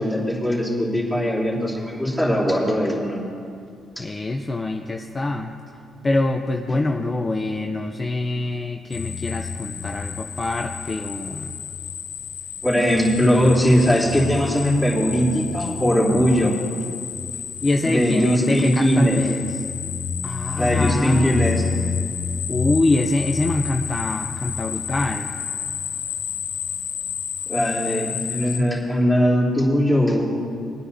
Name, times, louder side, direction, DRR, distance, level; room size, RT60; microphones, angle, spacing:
voice 1, 0.0-3.2 4.0-4.1 12.6-16.6 17.8-19.2 20.6-21.6 27.5-30.3, equal, ahead, -6 dB, 3.3 m, -20 dB
voice 2, 4.0-5.5 6.0-11.5 17.6-19.6 20.2-21.4 22.5-25.3, left 2 dB, 25° left, 3 dB, 0.7 m, -24 dB
sound 1, 8.9-28.6, left 6 dB, 85° left, 0.9 m, -30 dB
22.5 x 9.6 x 2.7 m, 2.3 s
cardioid pair, 90°, 0 cm